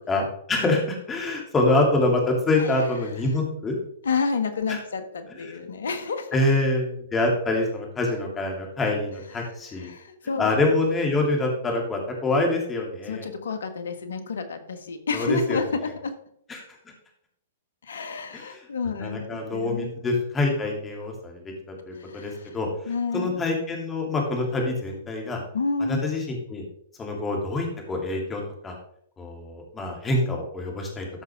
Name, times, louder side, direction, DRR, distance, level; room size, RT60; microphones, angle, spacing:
voice 1, 0.1-3.8 4.7-4.8 5.5-5.6 6.3-9.9 10.4-13.3 15.1-15.6 16.5-16.6 18.3-18.6 19.0-21.4 21.9-22.7 23.1-25.4 25.9-26.6 27.0-28.7 29.2-31.1, left 2 dB, 15° left, 0 dB, 3.0 m, -25 dB
voice 2, 4.0-6.4 9.4-9.5 9.8-10.5 13.1-16.1 17.8-19.9 22.0-22.6 22.8-23.4 25.5-26.1, left 4 dB, 75° left, 8 dB, 1.5 m, -30 dB
14.0 x 5.9 x 3.6 m, 0.67 s
hypercardioid pair, 120°, 0 cm